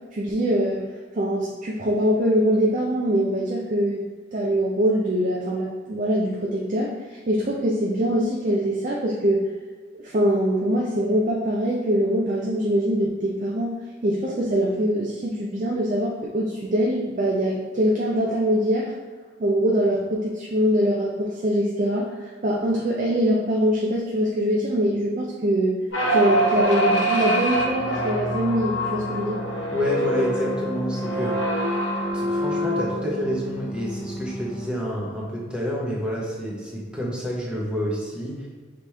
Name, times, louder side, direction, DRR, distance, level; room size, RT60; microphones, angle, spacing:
voice 1, 0.1-0.8 1.1-4.0 4.3-6.9 7.3-9.4 9.9-13.7 14.0-18.9 19.4-22.1 22.4-25.8 26.1-29.4, equal, 45° right, -2 dB, 0.5 m, -23 dB
sound 1, 25.9-34.7, right 1 dB, 85° left, 0.8 m, -25 dB
voice 2, 29.7-31.4 32.1-38.5, equal, 5° right, -4 dB, 0.9 m, -28 dB
5.1 x 3.0 x 3.3 m, 1.5 s
head